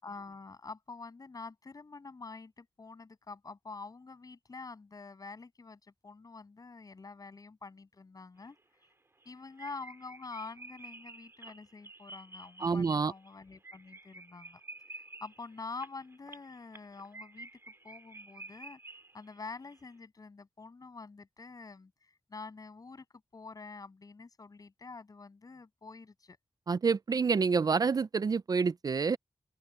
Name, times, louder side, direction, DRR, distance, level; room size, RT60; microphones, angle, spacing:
voice 1, 0.0-8.6 9.2-14.6 14.9-17.5 17.8-18.8 19.1-23.1 23.3-26.4, left 4 dB, 45° left, 7.7 m, -47 dB
sound 1, 8.4-8.5 8.8-8.9 9.2-9.3 9.6-19.4 19.7-19.8, right 2 dB, 30° right, 4.6 m, -50 dB
voice 2, 12.6-13.1 26.7-29.2, right 5 dB, 50° right, 0.4 m, -28 dB
open air
wide cardioid pair, 90°, 9 cm